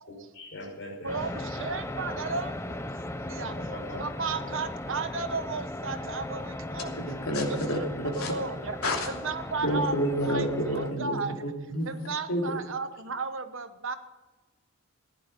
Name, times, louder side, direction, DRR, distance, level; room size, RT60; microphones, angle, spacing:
voice 1, 0.3-1.6 3.4-4.0 4.3-4.4, left 1 dB, 55° left, -1 dB, 5.7 m, -42 dB
voice 2, 1.0-2.5 3.3-3.6 3.9-7.0 7.4-8.8 9.1-9.9 10.3-10.5 10.7-11.5 11.8-14.0, right 4 dB, 65° right, 10 dB, 1.1 m, -34 dB
sound 1, 1.1-10.9, left 1 dB, 10° left, 0.5 m, -37 dB
voice 3, 6.8-8.3 8.8-9.1 9.6-11.2 11.7-12.6, equal, 80° left, 1 dB, 3.0 m, -29 dB
15.0 x 11.0 x 5.3 m, 1.2 s
head